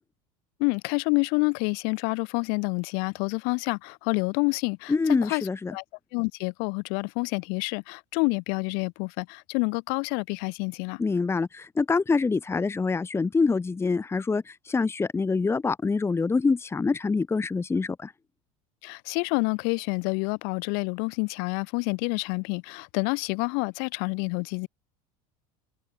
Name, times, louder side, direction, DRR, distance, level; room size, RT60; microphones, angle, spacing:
voice 1, 0.6-4.9 5.2-5.8 6.1-11.0 18.8-24.7, left 39 dB, 65° left, 4.1 m, -28 dB
voice 2, 4.9-5.7 11.0-18.1, left 4 dB, 15° left, 1.3 m, -25 dB
supercardioid pair, 115°, 17 cm